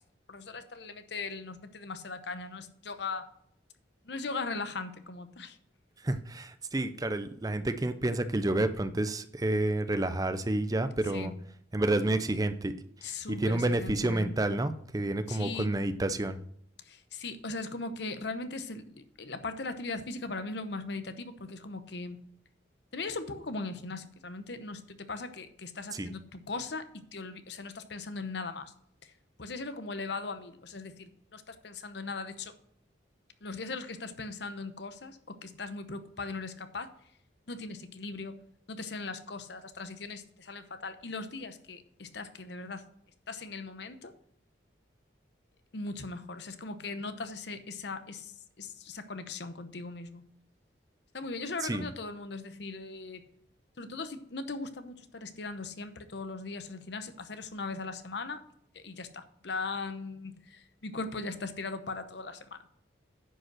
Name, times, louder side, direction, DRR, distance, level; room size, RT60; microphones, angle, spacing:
voice 1, 0.3-3.3 4.0-5.6 11.1-11.3 13.0-14.4 15.3-15.7 16.9-22.2 22.9-28.7 29.0-29.1 29.4-32.5 33.4-36.9 37.5-38.4 38.7-42.9 43.3-44.1 45.7-50.2 51.1-53.3 53.8-58.4 58.7-62.6, left 3 dB, 60° left, 10 dB, 0.9 m, -39 dB
voice 2, 6.0-11.3 11.7-12.7 13.0-16.4 25.9-26.1 51.6-51.9, right 1 dB, 20° right, 11 dB, 0.5 m, -29 dB
10.0 x 5.3 x 6.1 m, 0.69 s
head